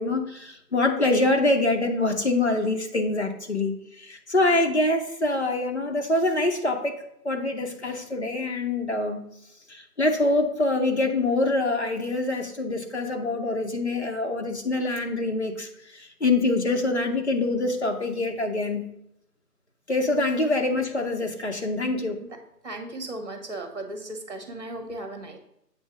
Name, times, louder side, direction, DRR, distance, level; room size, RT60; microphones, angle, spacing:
voice 1, 0.0-9.2 9.7-18.9 19.9-22.2, left 2 dB, 45° left, 3 dB, 0.7 m, -25 dB
voice 2, 22.6-25.4, right 2 dB, 45° right, 5 dB, 1.3 m, -36 dB
7.7 x 2.7 x 6.0 m, 0.79 s
figure-of-eight pair, 175°, 49 cm